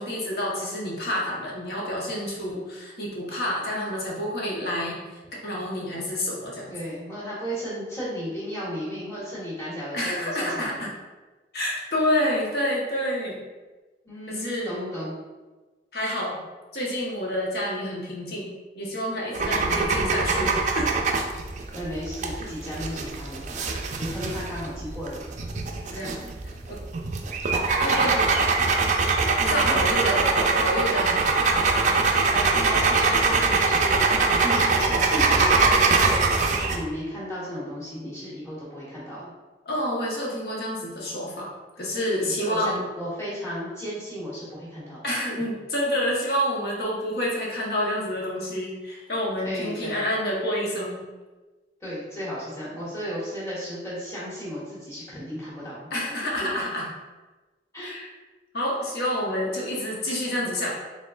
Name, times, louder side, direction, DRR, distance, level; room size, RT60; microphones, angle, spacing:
voice 1, 0.0-5.0 5.3-6.7 9.9-10.9 11.5-13.4 14.3-14.8 15.9-16.4 16.7-18.5 18.7-20.9 25.9-26.3 26.7-26.8 27.8-28.3 29.4-31.4 39.7-41.5 41.8-42.8 45.0-51.0 55.9-56.8 57.8-58.1 58.5-60.7, equal, 60° left, -3 dB, 1.0 m, -28 dB
voice 2, 6.7-10.8 14.0-15.1 19.5-19.7 21.7-23.6 24.0-25.2 25.9-26.1 29.5-29.7 32.3-34.0 34.4-39.3 42.2-45.0 49.4-50.0 51.8-55.8 57.7-58.0, equal, 15° left, -8 dB, 1.4 m, -34 dB
sound 1, 19.3-36.8, right 4 dB, 40° right, 0.4 m, -23 dB
4.2 x 3.6 x 2.4 m, 1.2 s
head